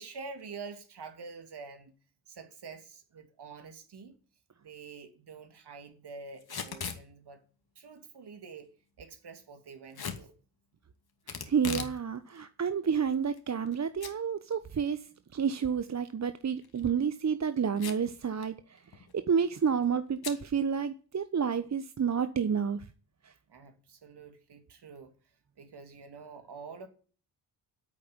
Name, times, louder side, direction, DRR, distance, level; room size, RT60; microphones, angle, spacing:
voice 1, 0.0-1.9 2.3-4.2 4.6-7.4 7.7-10.3 23.5-25.1 25.6-26.9, right 4 dB, 50° right, 3.0 m, -47 dB
Packing tape duct tape / Tearing, 6.4-7.0 9.9-10.2 11.3-12.0 12.3-12.4 13.1-13.7 14.0-14.1 14.5-14.6 16.6-16.8 17.8-18.1 18.4-18.5 18.8-19.1 20.2-20.4, left 6 dB, 45° left, 2.6 m, -38 dB
voice 2, 11.3-22.9 23.2-23.3, right 7 dB, 35° right, 1.1 m, -30 dB
9.3 x 8.7 x 9.6 m
hypercardioid pair, 40°, 49 cm